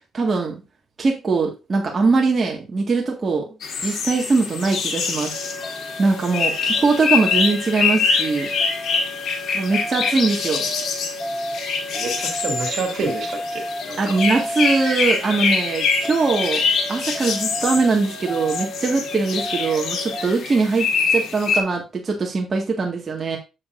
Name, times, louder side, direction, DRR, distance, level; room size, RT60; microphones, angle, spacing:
voice 1, 0.1-0.6 1.0-3.5 3.8-5.3 6.0-8.5 9.5-10.6 14.0-16.6 16.9-23.4, right 4 dB, 35° right, 0 dB, 1.8 m, -21 dB
sound 1, 3.6-21.6, left 5 dB, 70° left, 1.8 m, -25 dB
sound 2, 5.3-20.3, equal, 30° left, 4.8 m, -33 dB
voice 2, 11.9-14.2, right 4 dB, 65° right, 3 dB, 2.5 m, -28 dB
7.7 x 7.4 x 2.6 m, 0.27 s
cardioid pair, 90°, 0 cm